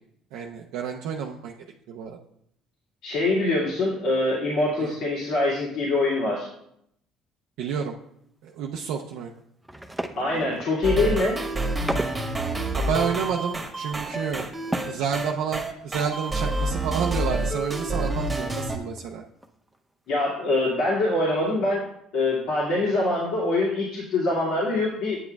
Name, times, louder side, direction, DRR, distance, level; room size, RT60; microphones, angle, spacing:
voice 1, 0.3-1.5 1.9-2.2 4.8-4.9 7.6-8.0 8.4-9.3 12.8-14.5 14.9-19.2, right 7 dB, 80° right, 0 dB, 0.5 m, -29 dB
voice 2, 3.0-6.5 10.2-11.4 20.1-21.8 22.1-25.2, left 2 dB, 75° left, -7 dB, 2.2 m, -24 dB
sound 1, 9.6-10.9 11.5-12.3 12.6-12.7 12.9-15.1 15.4-15.5 15.8-16.0 16.2-16.3 18.0-18.5 19.0-19.1 19.4-19.8, right 1 dB, 5° right, 0.6 m, -35 dB
sound 2, 10.8-18.8, right 1 dB, 25° right, 1.3 m, -28 dB
8.7 x 7.3 x 2.3 m, 0.74 s
supercardioid pair, 80°, 0 cm